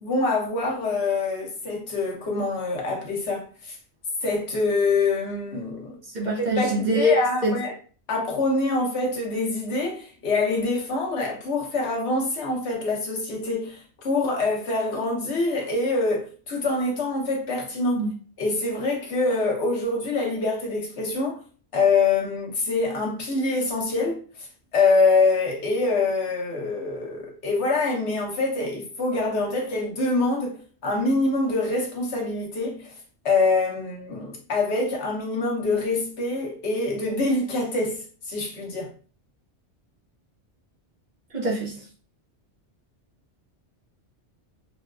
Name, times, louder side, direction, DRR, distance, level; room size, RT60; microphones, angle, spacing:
voice 1, 0.0-3.8 4.2-6.0 6.6-7.7 8.1-18.0 18.4-21.4 21.7-24.5 24.7-32.9 33.2-38.0 38.3-38.9, left 3 dB, 75° left, 1.1 m, -25 dB
voice 2, 6.1-7.2 7.4-7.6 18.0-18.1 41.3-41.8, equal, 45° right, 0.7 m, -24 dB
3.9 x 2.2 x 2.4 m
omnidirectional pair, 1.2 m